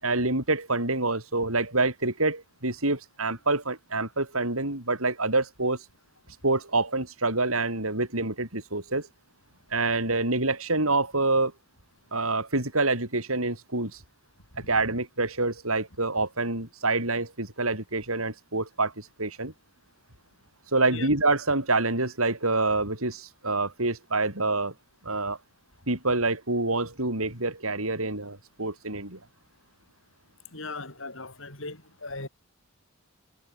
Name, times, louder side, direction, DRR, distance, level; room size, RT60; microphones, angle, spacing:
voice 1, 0.0-5.8 6.4-9.1 9.7-11.5 12.1-14.0 14.7-19.5 20.7-24.7 25.0-25.4 25.9-29.2, right 2 dB, 75° right, 7.7 m, -27 dB
voice 2, 30.5-32.3, left 3 dB, 60° left, 7.8 m, -38 dB
head